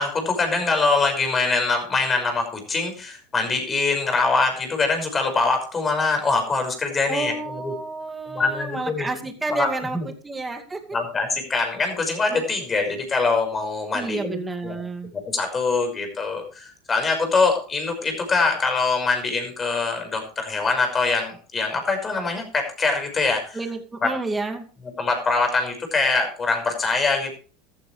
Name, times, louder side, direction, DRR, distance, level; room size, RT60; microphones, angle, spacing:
voice 1, 0.0-7.7 8.3-9.1 9.5-10.1 10.9-14.4 14.6-14.8 15.1-23.6 24.0-24.1 25.0-27.3, left 3 dB, 20° left, 4 dB, 5.8 m, -23 dB
voice 2, 7.1-10.0 10.2-10.8 13.9-15.1 23.5-24.7, right 3 dB, 15° right, 5 dB, 2.4 m, -30 dB
14.0 x 13.5 x 3.4 m, 0.38 s
supercardioid pair, 125°, 0 cm